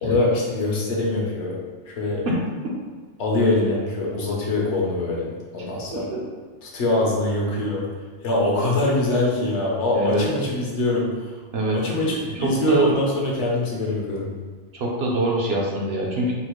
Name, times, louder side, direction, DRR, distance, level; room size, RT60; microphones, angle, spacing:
voice 1, 0.0-1.5 1.9-2.2 3.2-6.1 6.6-7.8 8.2-11.2 11.7-14.3, left 2 dB, 70° left, -3 dB, 1.0 m, -23 dB
voice 2, 9.9-10.3 11.5-11.8 12.3-13.0 14.7-16.3, right 2 dB, 65° right, -3 dB, 0.8 m, -24 dB
4.1 x 2.0 x 2.9 m, 1.4 s
omnidirectional pair, 1.2 m